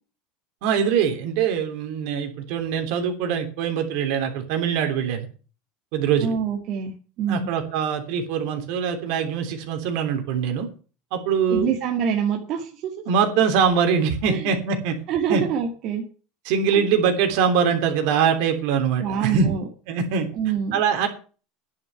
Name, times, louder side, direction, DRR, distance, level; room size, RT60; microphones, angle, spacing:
voice 1, 0.6-5.3 5.9-6.3 7.3-10.7 11.1-11.7 13.1-15.0 15.3-15.4 16.4-19.5 19.9-20.3 20.7-21.1, right 7 dB, 70° right, 6 dB, 3.3 m, -23 dB
voice 2, 6.2-6.9 7.2-7.5 11.5-12.9 14.2-14.5 15.1-16.0 16.7-16.8 19.0-19.7 20.3-20.8, right 7 dB, 50° right, 1 dB, 2.2 m, -25 dB
10.5 x 6.8 x 9.3 m, 0.38 s
supercardioid pair, 125°, 0 cm